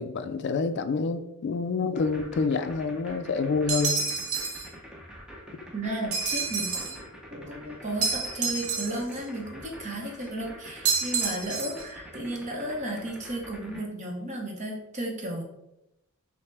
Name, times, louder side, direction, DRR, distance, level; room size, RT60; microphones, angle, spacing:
voice 1, 0.0-4.0, left 4 dB, 50° left, 9 dB, 0.3 m, -27 dB
sound 1, 2.0-13.8, equal, 5° right, 0.5 m, -46 dB
sound 2, 3.7-4.7 6.1-7.0 8.0-9.2 10.8-11.9, right 5 dB, 75° right, 0.9 m, -29 dB
voice 2, 5.7-7.0 7.3-15.4, right 1 dB, 35° right, 0 dB, 0.8 m, -34 dB
5.6 x 2.1 x 3.3 m, 0.88 s
head